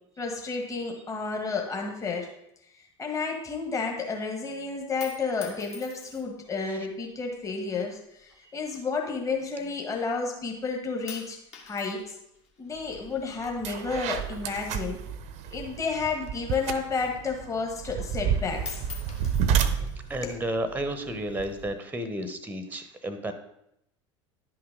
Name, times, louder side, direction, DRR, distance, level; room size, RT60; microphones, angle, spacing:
voice 1, 0.2-2.3 2.7-11.4 11.6-12.2 12.6-15.0 15.5-18.8 19.7-20.3, left 4 dB, 20° left, 1 dB, 1.6 m, -31 dB
sound 1, 4.7-6.5 7.3-7.8 8.6-10.0 10.3-10.7 11.1-15.1 15.4-17.1 17.5-17.6 17.9-18.3 18.6-20.4 21.2-21.8, left 5 dB, 40° left, 1.8 m, -46 dB
sound 2, 12.9-13.1 13.4-21.7, right 8 dB, 50° right, 0.7 m, -31 dB
voice 2, 20.1-23.3, right 1 dB, 10° right, 10 dB, 0.9 m, -32 dB
11.0 x 5.8 x 3.8 m, 0.79 s
figure-of-eight pair, 75°, 16 cm